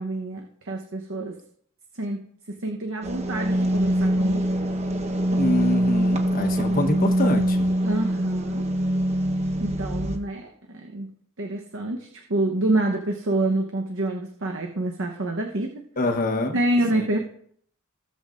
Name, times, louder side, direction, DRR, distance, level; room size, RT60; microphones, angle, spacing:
voice 1, 0.0-1.3 1.9-2.2 2.5-4.4 7.8-8.7 9.6-11.1 11.4-15.7 16.5-17.2, right 1 dB, 65° right, 2 dB, 1.0 m, -27 dB
sound 1, 3.0-10.2, equal, 30° right, 1.0 m, -23 dB
voice 2, 5.4-7.7 16.0-16.6 16.9-17.1, left 1 dB, 40° left, 4 dB, 1.2 m, -25 dB
17.0 x 7.4 x 2.5 m, 0.64 s
head